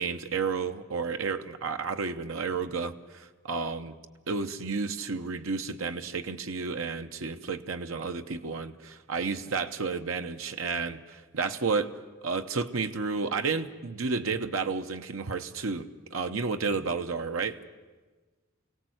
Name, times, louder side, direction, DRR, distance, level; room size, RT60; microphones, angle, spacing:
voice 1, 0.0-3.9 4.3-11.9 12.2-17.6, right 4 dB, 90° right, 7 dB, 0.9 m, -31 dB
24.0 x 17.0 x 7.9 m, 1.3 s
head